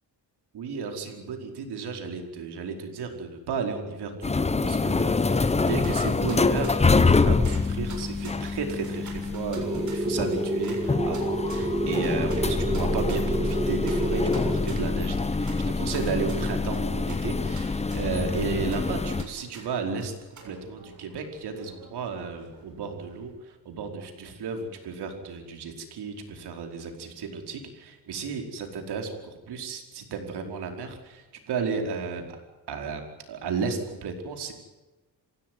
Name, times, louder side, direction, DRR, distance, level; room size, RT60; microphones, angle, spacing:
voice 1, 0.5-32.2 32.7-34.5, right 5 dB, 90° right, 4 dB, 5.1 m, -33 dB
sound 1, 4.2-19.2, left 4 dB, 15° left, 0.9 m, -26 dB
sound 2, 5.3-23.3, right 4 dB, 50° right, 6.9 m, -50 dB
sound 3, 9.6-14.6, right 1 dB, 15° right, 2.3 m, -29 dB
27.0 x 17.0 x 9.5 m, 1.1 s
cardioid pair, 125°, 38 cm